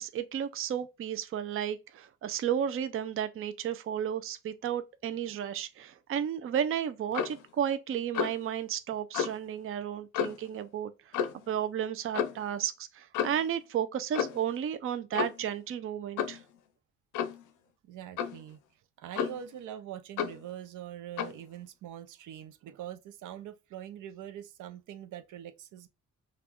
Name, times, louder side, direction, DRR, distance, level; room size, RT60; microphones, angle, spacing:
voice 1, 0.0-11.2 11.5-16.4, right 9 dB, 45° right, 0.5 m, -33 dB
Clock, 7.1-7.4 8.1-8.4 9.1-9.4 10.1-10.5 11.1-11.4 12.1-12.4 13.1-13.5 14.1-14.5 15.1-15.5 16.2-16.4 17.1-17.4 18.2-18.4 19.1-19.5 20.2-20.4 21.2-21.4, left 8 dB, 85° left, 0.6 m, -32 dB
voice 2, 17.8-18.6 19.0-25.9, right 10 dB, 80° right, 0.7 m, -43 dB
5.8 x 2.3 x 3.0 m
cardioid pair, 90°, 30 cm